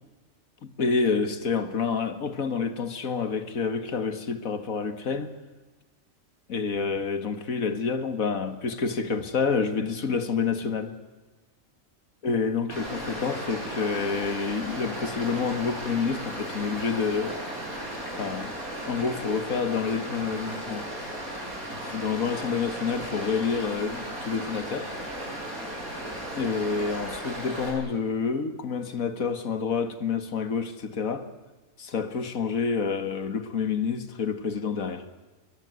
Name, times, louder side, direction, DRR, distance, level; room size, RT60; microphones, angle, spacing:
voice 1, 0.6-5.3 6.5-11.0 12.2-17.4 18.2-18.5 18.9-20.9 21.9-24.9 26.3-31.3 31.8-35.1, left 5 dB, 75° left, 2.1 m, -28 dB
Stream, 12.7-27.7, equal, 90° right, 8.5 m, -36 dB
22.5 x 21.5 x 9.5 m
omnidirectional pair, 1.5 m